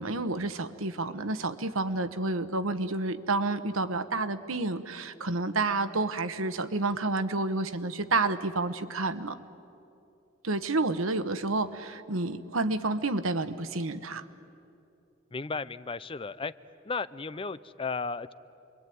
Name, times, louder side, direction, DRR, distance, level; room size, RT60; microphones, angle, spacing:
voice 1, 0.0-9.4 10.4-14.2, right 3 dB, 90° right, 11 dB, 1.2 m, -30 dB
voice 2, 15.3-16.5 16.9-18.3, left 4 dB, 25° left, 15 dB, 0.5 m, -34 dB
28.5 x 22.5 x 9.4 m, 2.7 s
head